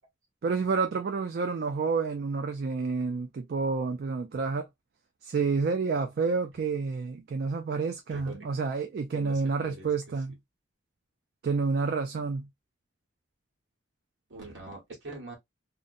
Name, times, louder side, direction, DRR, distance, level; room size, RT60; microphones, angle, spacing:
voice 1, 0.4-4.7 5.2-10.4 11.4-12.5, right 4 dB, 55° right, 0.3 m, -29 dB
voice 2, 9.1-9.9 14.3-15.3, right 3 dB, 70° right, 1.3 m, -43 dB
2.6 x 2.1 x 2.4 m
head